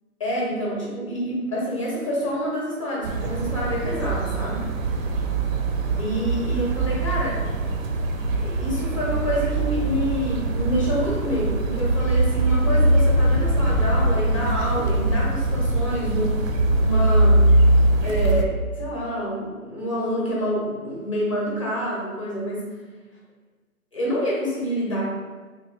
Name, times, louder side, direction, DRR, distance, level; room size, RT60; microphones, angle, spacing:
voice 1, 0.2-4.6 6.0-7.4 8.4-17.4 18.0-22.7 23.9-25.1, equal, 25° left, -5 dB, 0.5 m, -27 dB
sound 1, 3.0-18.4, right 2 dB, 60° right, 0.5 m, -22 dB
3.0 x 2.0 x 4.1 m, 1.4 s
hypercardioid pair, 155°, 45 cm